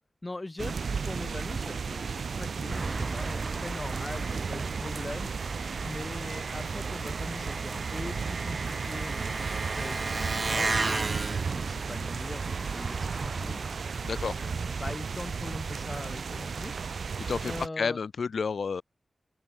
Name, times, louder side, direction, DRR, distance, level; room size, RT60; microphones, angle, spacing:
voice 1, 0.2-5.4 5.8-13.6 14.1-17.1 17.4-18.0, left 2 dB, 25° left, 7.8 m, -41 dB
sound 1, 0.6-17.7, right 5 dB, 90° right, 5.2 m, -34 dB
Engine, 2.7-14.9, right 3 dB, 40° right, 0.9 m, -36 dB
voice 2, 14.0-14.4 17.3-18.8, left 5 dB, 85° left, 3.2 m, -30 dB
open air
wide cardioid pair, 110°, 0 cm